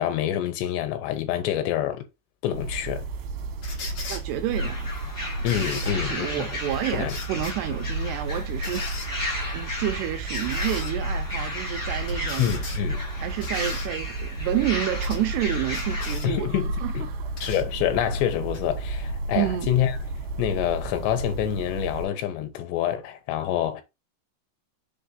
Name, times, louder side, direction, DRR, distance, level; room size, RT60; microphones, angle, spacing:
voice 1, 0.0-2.0 2.4-3.1 5.4-6.5 6.9-7.2 12.4-13.0 16.2-17.1 17.4-20.0 20.4-23.8, left 11 dB, 75° left, 3.2 m, -27 dB
sound 1, 2.5-22.1, right 2 dB, 70° right, 3.2 m, -32 dB
sound 2, 3.6-4.2 5.5-5.9 7.1-7.5 8.6-9.1 10.3-10.9 12.1-12.8 13.4-13.9 15.0-15.2 15.7-16.3 17.4-17.6 18.5-18.6, left 4 dB, 50° left, 2.6 m, -38 dB
voice 2, 4.1-4.9 5.2-12.5 13.2-16.5 16.8-16.9 19.4-19.7, right 12 dB, 85° right, 2.4 m, -30 dB
sound 3, 4.6-16.2, left 1 dB, 10° left, 2.7 m, -35 dB
6.9 x 4.3 x 3.9 m
omnidirectional pair, 5.3 m